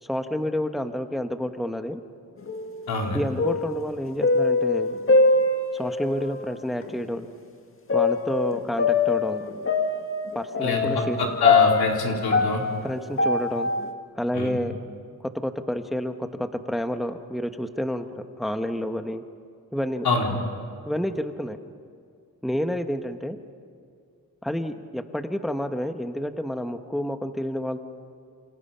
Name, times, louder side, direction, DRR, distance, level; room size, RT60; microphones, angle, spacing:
voice 1, 0.0-2.0 3.1-4.9 5.7-7.3 7.9-9.4 10.3-11.2 12.8-13.7 14.2-14.8 15.2-19.2 19.7-20.1 20.9-21.6 22.4-23.4 24.4-27.8, equal, ahead, 7 dB, 1.0 m, -29 dB
sound 1, 2.4-3.0 3.2-6.1 6.8-6.9 7.9-13.9, left 4 dB, 35° left, 2.0 m, -23 dB
voice 2, 2.9-3.2 10.6-12.6 14.3-14.6 20.0-20.3, left 3 dB, 85° left, 0 dB, 4.0 m, -25 dB
29.0 x 27.5 x 5.6 m, 2.3 s
wide cardioid pair, 120°, 36 cm